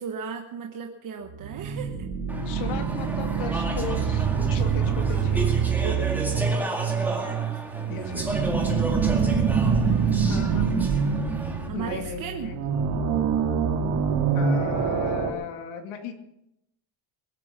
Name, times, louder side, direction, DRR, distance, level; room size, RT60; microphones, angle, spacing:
voice 1, 0.0-2.1 5.8-6.5 7.5-10.3 11.7-12.5, right 6 dB, 40° right, 3 dB, 1.3 m, -37 dB
sound 1, 1.3-15.3, right 6 dB, 85° right, 2.4 m, -25 dB
Speech / Chatter, 2.3-11.7, right 1 dB, 5° right, 2.1 m, -33 dB
voice 2, 2.4-5.5 7.9-8.5 10.2-10.7 11.7-12.6 14.3-16.1, left 7 dB, 90° left, 5 dB, 2.5 m, -36 dB
21.5 x 8.8 x 6.0 m, 0.83 s
cardioid pair, 160°, 47 cm